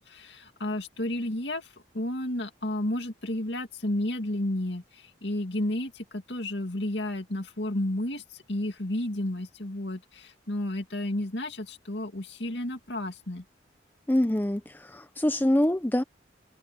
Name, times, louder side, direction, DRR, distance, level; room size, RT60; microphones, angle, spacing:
voice 1, 0.0-1.7 1.9-13.4, left 1 dB, 65° left, 2.5 m, -32 dB
voice 2, 14.1-16.0, left 1 dB, 10° left, 0.6 m, -25 dB
head